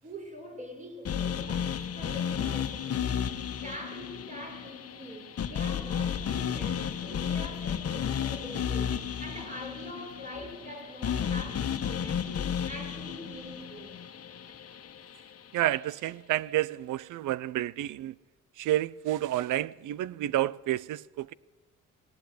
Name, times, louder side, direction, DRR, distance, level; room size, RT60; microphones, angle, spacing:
voice 1, 0.0-3.2 3.6-14.0, equal, 25° right, 6.5 m, -44 dB
sound 1, 1.1-15.2, left 8 dB, 50° left, 1.4 m, -33 dB
voice 2, 15.5-18.1 18.6-21.3, right 14 dB, 80° right, 0.7 m, -30 dB
19.0 x 18.0 x 9.6 m
cardioid pair, 90°, 30 cm